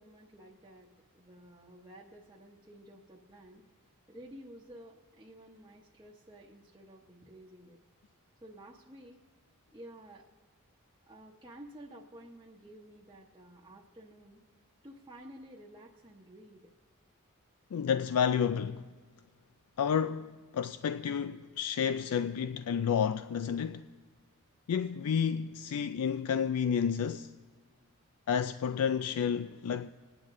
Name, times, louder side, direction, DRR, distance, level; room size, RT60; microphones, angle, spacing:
voice 1, 0.0-7.8 8.4-9.2 9.7-10.3 11.0-14.4 14.8-16.7, right 1 dB, 20° right, 0.9 m, -52 dB
voice 2, 17.7-18.8 19.8-23.9 24.7-27.3 28.3-29.9, left 7 dB, 75° left, 0.4 m, -30 dB
25.5 x 9.7 x 3.7 m
head